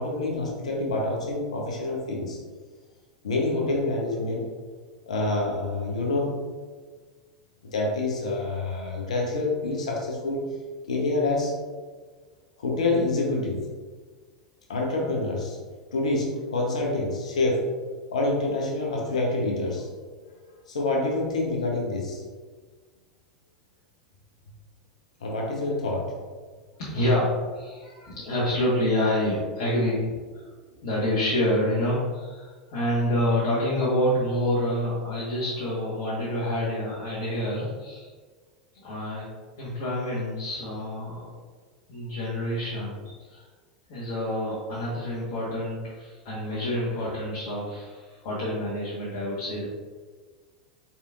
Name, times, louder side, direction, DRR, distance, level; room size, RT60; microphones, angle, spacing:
voice 1, 0.0-2.4 3.2-4.5 5.1-6.4 7.6-10.4 10.9-11.5 12.6-13.7 14.7-15.6 15.9-17.7 18.1-19.9 20.2-20.4 20.7-22.2 25.2-26.1, left 2 dB, 75° left, -1 dB, 0.9 m, -27 dB
voice 2, 26.8-30.5 30.7-38.1 38.8-39.3 39.6-41.3 41.9-43.5 43.9-49.7, left 1 dB, 55° left, -8 dB, 1.4 m, -27 dB
5.0 x 4.2 x 2.5 m, 1.5 s
figure-of-eight pair, 85°, 4 cm